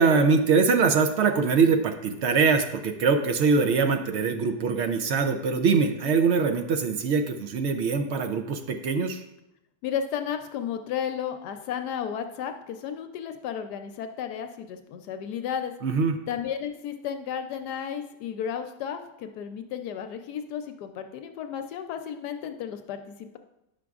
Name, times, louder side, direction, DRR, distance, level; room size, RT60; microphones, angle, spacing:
voice 1, 0.0-9.2 15.8-16.2, right 5 dB, 70° right, 6 dB, 0.6 m, -23 dB
voice 2, 9.8-15.7 16.3-23.4, left 8 dB, 80° left, 7 dB, 1.1 m, -33 dB
10.0 x 5.9 x 2.4 m, 0.89 s
omnidirectional pair, 1.7 m